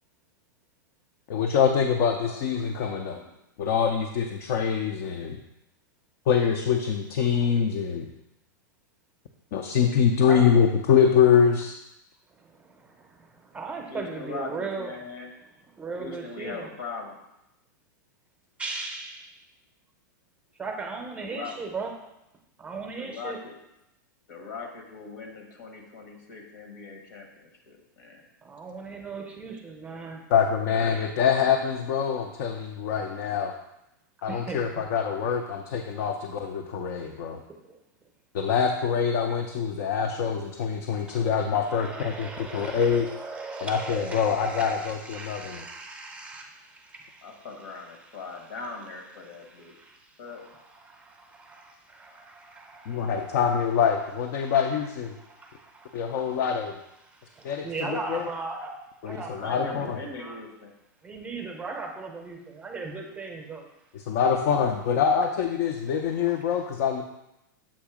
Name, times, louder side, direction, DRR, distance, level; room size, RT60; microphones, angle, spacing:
voice 1, 1.3-3.2 3.6-5.4 6.3-8.1 9.5-11.8 30.3-33.5 34.2-37.4 38.3-43.1 43.6-45.6 52.9-55.1 55.9-56.8 57.4-58.3 59.0-60.0 64.1-67.0, left 7 dB, 50° left, 3 dB, 0.5 m, -24 dB
voice 2, 2.2-2.7 3.1-3.3 13.9-15.3 16.0-17.2 21.2-21.7 23.0-23.6 24.3-28.2 47.2-49.7 50.2-50.4 59.4-60.7, left 4 dB, 75° left, 2 dB, 1.4 m, -40 dB
voice 3, 12.3-15.0 15.7-16.7 18.6-19.4 20.6-21.9 22.6-23.4 28.4-30.2 34.3-34.7 37.6-37.8 41.1-47.5 48.0-48.4 49.2-53.6 54.4-54.6 55.1-56.5 57.0-58.7 59.0-59.9 60.2-60.4 61.0-63.7, right 4 dB, 10° right, 2 dB, 0.7 m, -38 dB
7.2 x 2.7 x 4.9 m, 0.87 s
hypercardioid pair, 135°, 11 cm